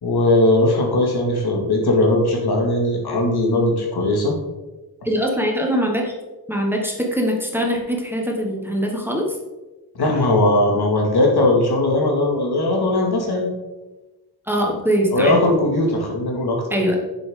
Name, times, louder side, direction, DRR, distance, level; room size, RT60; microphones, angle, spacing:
voice 1, 0.0-4.3 9.9-13.5 15.1-16.6, left 1 dB, 85° left, 0 dB, 2.2 m, -19 dB
voice 2, 5.0-6.1 6.5-9.2 14.5-15.3 16.7-17.0, equal, 5° right, 0 dB, 1.4 m, -22 dB
10.0 x 7.0 x 3.8 m, 1.1 s
wide cardioid pair, 180°, 38 cm